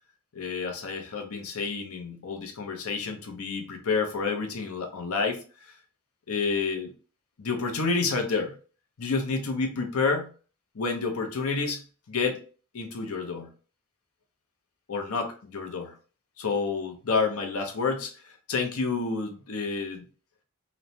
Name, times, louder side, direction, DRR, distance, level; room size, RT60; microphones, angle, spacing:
voice 1, 0.3-5.7 6.3-6.9 7.4-8.6 9.0-10.3 10.7-12.4 12.7-13.5 14.9-15.9 16.4-20.0, left 4 dB, 75° left, 4 dB, 0.6 m, -29 dB
3.0 x 2.1 x 2.6 m, 0.38 s
head